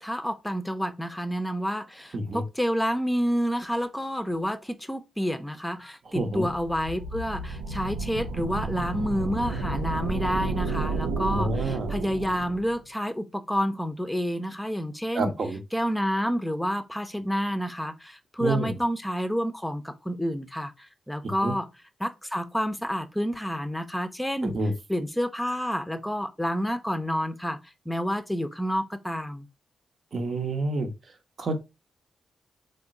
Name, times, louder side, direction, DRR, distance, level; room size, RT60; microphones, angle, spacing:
voice 1, 0.0-15.3 15.7-21.7 22.0-24.6 24.9-27.6 27.9-29.5, equal, 5° left, 0.6 m, -29 dB
voice 2, 6.1-6.5 11.3-11.9 15.1-15.6 18.4-18.8 21.2-21.5 24.4-24.7 30.1-30.9 31.4-31.6, right 2 dB, 60° right, 0.8 m, -28 dB
sound 1, 6.3-12.8, right 3 dB, 90° right, 0.4 m, -31 dB
3.6 x 2.1 x 3.7 m
supercardioid pair, 45°, 0 cm